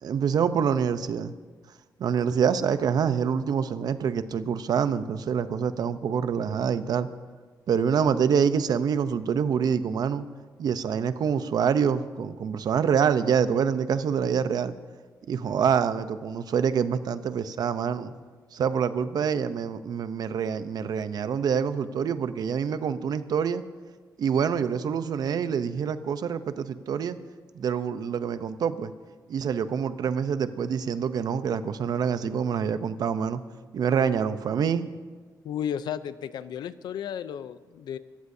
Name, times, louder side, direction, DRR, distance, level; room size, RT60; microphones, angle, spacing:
voice 1, 0.0-1.3 2.0-7.1 7.7-10.3 10.6-14.7 15.3-18.1 18.5-23.6 24.2-27.2 27.5-28.9 29.3-33.4 33.7-34.9, right 7 dB, 70° right, 12 dB, 0.7 m, -26 dB
voice 2, 35.4-38.0, left 9 dB, 90° left, 14 dB, 0.6 m, -33 dB
25.0 x 15.0 x 2.7 m, 1.4 s
cardioid pair, 115°, 7 cm